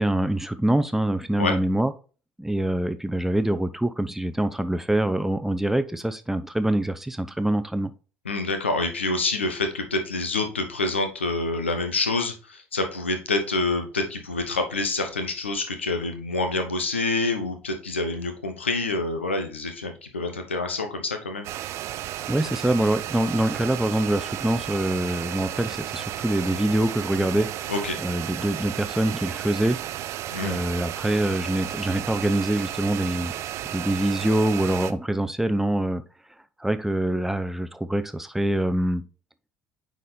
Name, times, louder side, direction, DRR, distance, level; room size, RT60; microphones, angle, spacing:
voice 1, 0.0-1.9 2.4-7.9 22.3-27.5 28.0-29.8 30.4-33.3 33.7-36.0 36.6-39.0, right 1 dB, 5° right, 10 dB, 0.6 m, -24 dB
voice 2, 8.2-21.5 27.7-28.0 30.3-30.6, left 3 dB, 80° left, 7 dB, 0.9 m, -27 dB
sound 1, 21.4-34.9, right 12 dB, 50° right, 0.5 m, -33 dB
9.3 x 3.9 x 3.3 m, 0.36 s
figure-of-eight pair, 55°, 6 cm